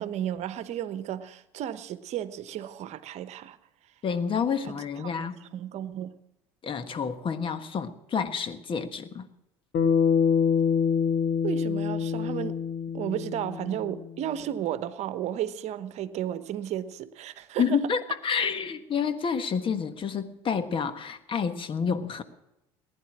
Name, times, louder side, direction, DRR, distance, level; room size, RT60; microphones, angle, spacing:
voice 1, 0.0-3.6 4.6-6.1 11.4-12.6 12.9-17.8 18.4-18.5, right 11 dB, 55° right, 1.0 m, -33 dB
voice 2, 4.0-5.4 6.6-9.3 17.6-22.2, left 6 dB, 40° left, 1.5 m, -29 dB
Bass guitar, 9.7-14.1, left 6 dB, 60° left, 2.1 m, -25 dB
19.5 x 10.5 x 6.1 m
hypercardioid pair, 70°, 13 cm